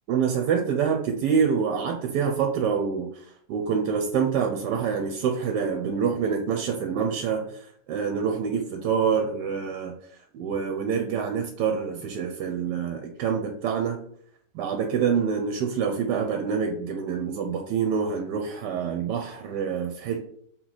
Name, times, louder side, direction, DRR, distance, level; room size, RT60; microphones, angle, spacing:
voice 1, 0.1-9.9 10.3-14.0 14.5-20.2, right 6 dB, 80° right, 4 dB, 1.2 m, -26 dB
3.8 x 3.1 x 3.9 m, 0.63 s
omnidirectional pair, 1.8 m